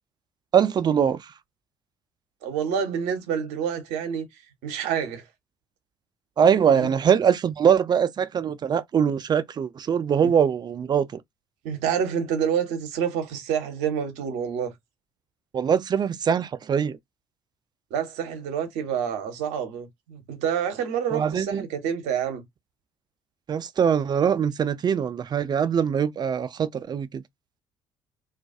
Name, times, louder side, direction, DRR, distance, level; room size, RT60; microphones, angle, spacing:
voice 1, 0.5-1.2 6.4-11.2 15.5-17.0 21.1-21.6 23.5-27.2, right 7 dB, 35° right, 0.4 m, -22 dB
voice 2, 2.4-4.3 4.6-5.2 6.7-6.9 10.2-10.3 11.6-14.7 17.9-22.4, right 8 dB, 65° right, 0.7 m, -28 dB
2.4 x 2.2 x 2.4 m
figure-of-eight pair, 50°, 13 cm